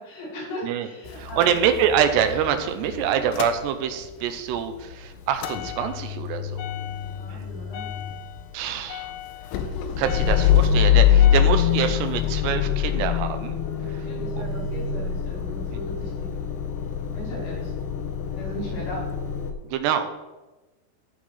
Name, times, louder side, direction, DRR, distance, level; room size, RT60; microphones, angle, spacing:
voice 1, 0.0-1.5 3.0-3.3 6.8-7.9 10.2-10.3 11.0-11.5 13.7-16.4 17.1-17.7 18.3-19.1, right 1 dB, 55° left, -7 dB, 4.8 m, -38 dB
Motor vehicle (road) / Engine starting / Idling, 1.1-4.2 4.5-19.5, left 10 dB, 80° left, 2.7 m, -25 dB
voice 2, 1.2-6.7 7.3-7.4 8.5-9.1 10.0-13.6 13.9-14.1 14.4-14.5 19.7-20.2, right 8 dB, 90° right, 8 dB, 2.8 m, -25 dB
13.5 x 4.7 x 4.4 m, 1.1 s
omnidirectional pair, 4.8 m